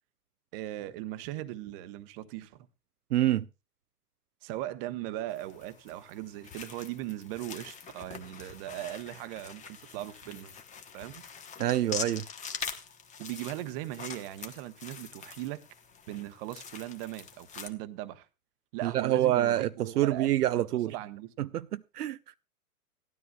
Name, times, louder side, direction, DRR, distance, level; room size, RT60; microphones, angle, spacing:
voice 1, 0.5-2.7 4.4-10.6 10.9-11.2 13.2-15.6 16.1-18.3 18.7-20.3 20.6-21.5, right 14 dB, 35° right, 1.0 m, -39 dB
voice 2, 3.1-3.5 11.6-12.2 18.8-20.9 21.4-22.2, right 13 dB, 70° right, 0.6 m, -27 dB
sound 1, 5.3-17.7, left 6 dB, 15° left, 1.1 m, -44 dB
17.0 x 12.5 x 2.3 m
hypercardioid pair, 120°, 47 cm